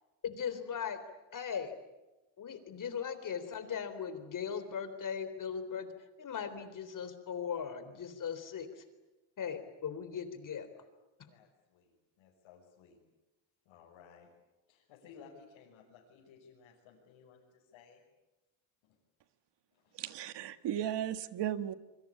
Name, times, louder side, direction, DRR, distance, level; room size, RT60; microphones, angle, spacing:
voice 1, 0.2-1.0 1.3-1.7 2.4-5.9 6.2-8.8 9.4-10.7, left 7 dB, 40° left, 10 dB, 3.8 m, -38 dB
voice 2, 11.2-13.0 13.6-14.3 14.7-18.0 18.8-19.0 19.7-20.2, left 6 dB, 85° left, -3 dB, 6.4 m, -58 dB
voice 3, 20.0-21.8, right 10 dB, 60° right, 11 dB, 1.7 m, -35 dB
27.5 x 24.0 x 8.6 m, 1.0 s
cardioid pair, 140°, 47 cm